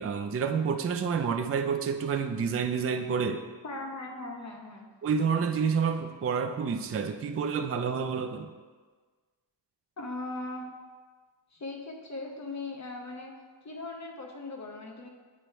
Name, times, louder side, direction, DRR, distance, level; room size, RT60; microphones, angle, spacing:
voice 1, 0.0-3.4 5.0-8.5, right 6 dB, 30° right, 6 dB, 0.4 m, -29 dB
voice 2, 3.6-4.9 10.0-10.7 11.5-13.3 13.6-15.1, left 2 dB, 35° left, 1 dB, 1.0 m, -39 dB
8.5 x 3.1 x 4.4 m, 1.4 s
wide cardioid pair, 105°, 47 cm